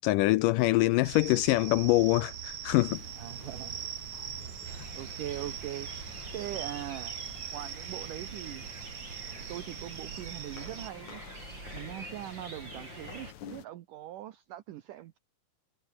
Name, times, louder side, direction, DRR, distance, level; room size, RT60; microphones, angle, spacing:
voice 1, 0.0-3.0, left 19 dB, 80° left, 2.0 m, -24 dB
sound 1, 1.0-10.9, right 10 dB, 55° right, 2.4 m, -41 dB
sound 2, 2.9-13.7, left 10 dB, 60° left, 2.7 m, -51 dB
voice 2, 3.2-3.8 4.9-5.9 6.3-7.2 7.5-8.6 9.5-11.2 11.7-15.2, right 13 dB, 70° right, 2.4 m, -41 dB
sound 3, 4.6-13.3, right 2 dB, 30° right, 7.7 m, -47 dB
omnidirectional pair, 4.2 m